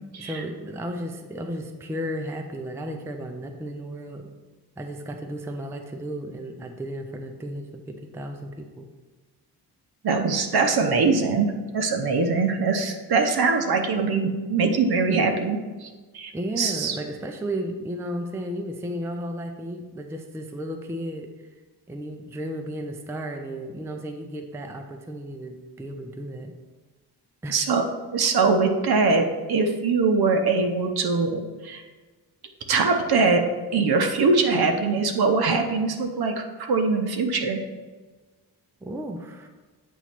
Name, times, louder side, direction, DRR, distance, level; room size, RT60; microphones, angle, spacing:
voice 1, 0.2-4.3 4.8-8.9 16.3-21.3 21.9-26.5 27.4-27.6 38.8-39.5, equal, 5° right, 4 dB, 0.4 m, -34 dB
voice 2, 10.0-17.0 27.5-27.8 28.1-31.8 32.7-33.4 33.7-37.6, right 4 dB, 65° right, 5 dB, 0.8 m, -22 dB
8.2 x 3.1 x 5.8 m, 1.3 s
wide cardioid pair, 165°, 41 cm